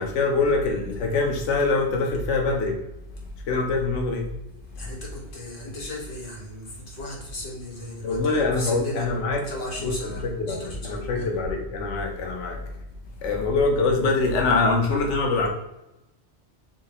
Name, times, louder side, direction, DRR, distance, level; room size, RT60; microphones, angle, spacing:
voice 1, 0.0-2.8 3.5-4.3 8.0-9.5 9.8-12.6 13.2-15.5, left 3 dB, 90° left, 1.0 m, -24 dB
voice 2, 4.7-9.1 9.5-11.3, left 1 dB, 50° left, 1.3 m, -36 dB
5.0 x 3.0 x 2.8 m
omnidirectional pair, 1.2 m